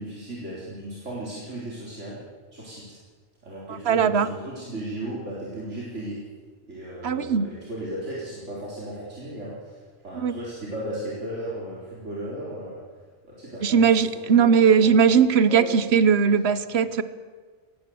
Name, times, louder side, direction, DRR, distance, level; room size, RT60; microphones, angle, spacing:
voice 1, 0.0-2.2 2.5-3.0 3.4-6.2 6.7-12.8 13.2-15.1 15.4-15.9 16.4-16.6, right 1 dB, 85° right, 4.3 m, -36 dB
voice 2, 3.7-4.3 7.0-7.5 10.1-10.3 13.6-17.0, right 6 dB, 65° right, 1.2 m, -19 dB
23.0 x 19.0 x 7.8 m
omnidirectional pair, 1.2 m